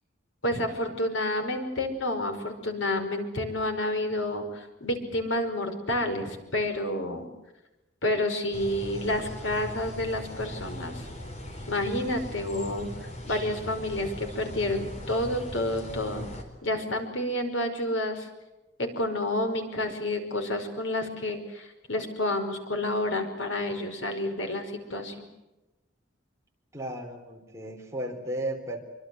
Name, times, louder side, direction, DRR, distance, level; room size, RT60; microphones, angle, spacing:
voice 1, 0.4-7.3 8.0-11.0 11.7-12.9 13.3-16.3 16.6-18.3 18.8-25.3, left 1 dB, 85° left, 5 dB, 5.3 m, -29 dB
sound 1, 8.5-16.4, left 1 dB, 35° left, 4.3 m, -39 dB
voice 2, 26.7-28.8, right 1 dB, 15° right, 1 dB, 4.1 m, -34 dB
26.5 x 24.5 x 7.8 m, 1.0 s
head